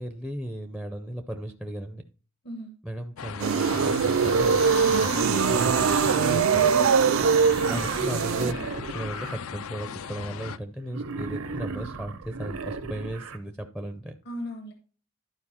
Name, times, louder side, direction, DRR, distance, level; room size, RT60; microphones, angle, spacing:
voice 1, 0.0-2.0 2.8-6.9 7.7-8.6 8.9-14.2, right 1 dB, ahead, 6 dB, 0.5 m, -36 dB
sound 1, 3.2-10.6, left 7 dB, 70° left, 0.4 m, -37 dB
sound 2, 3.4-8.5, right 6 dB, 65° right, 0.4 m, -22 dB
Wild animals, 6.9-9.4 10.9-13.4, right 3 dB, 85° right, 0.9 m, -36 dB
voice 2, 14.3-14.7, equal, 50° left, 4 dB, 1.0 m, -38 dB
12.0 x 4.5 x 4.3 m, 0.39 s
head